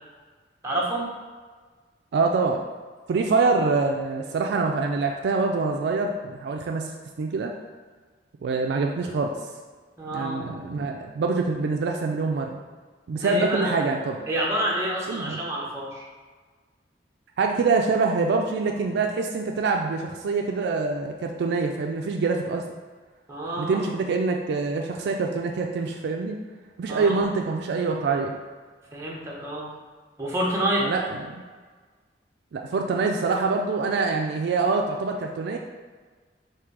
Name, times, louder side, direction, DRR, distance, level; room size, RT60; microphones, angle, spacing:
voice 1, 0.6-1.1 10.0-10.4 13.1-13.7 14.3-16.1 23.3-23.9 26.9-27.2 28.9-29.7 30.2-30.9, right 1 dB, 15° right, -4 dB, 0.9 m, -28 dB
voice 2, 2.1-2.6 3.1-6.9 7.2-7.5 8.4-9.3 10.1-12.6 13.1-14.2 15.1-15.4 17.4-22.6 23.6-26.4 26.8-28.3 30.8-31.4 32.5-35.6, right 4 dB, 65° right, 2 dB, 0.3 m, -25 dB
3.7 x 2.7 x 4.6 m, 1.4 s
head